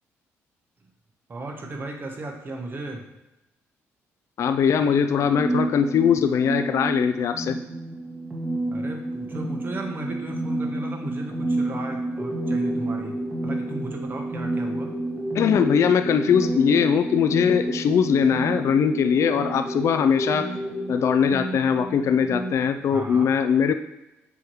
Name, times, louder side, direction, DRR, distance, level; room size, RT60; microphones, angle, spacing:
voice 1, 1.3-3.0 8.7-13.2 13.4-14.9 22.9-23.3, right 2 dB, 40° right, 2 dB, 1.3 m, -35 dB
voice 2, 4.4-7.6 15.3-20.5 20.9-23.7, left 7 dB, 60° left, 8 dB, 0.4 m, -21 dB
sound 1, 5.2-22.5, right 1 dB, 20° right, 1.5 m, -30 dB
7.0 x 3.1 x 4.7 m, 0.94 s
cardioid pair, 80°, 6 cm